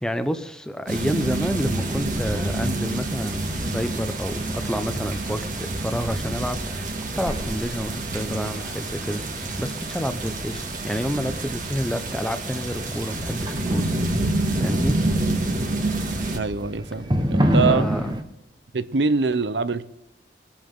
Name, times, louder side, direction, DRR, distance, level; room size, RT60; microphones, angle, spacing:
voice 1, 0.0-13.9 14.6-14.9 17.6-18.2, equal, 5° left, 8 dB, 0.9 m, -29 dB
sound 1, 0.9-16.4, right 2 dB, 45° right, 1.9 m, -28 dB
sound 2, 1.7-18.2, equal, 25° right, 1.1 m, -31 dB
voice 2, 16.3-17.9 18.7-19.8, right 4 dB, 80° right, 14 dB, 0.8 m, -24 dB
23.0 x 8.8 x 3.7 m, 0.94 s
head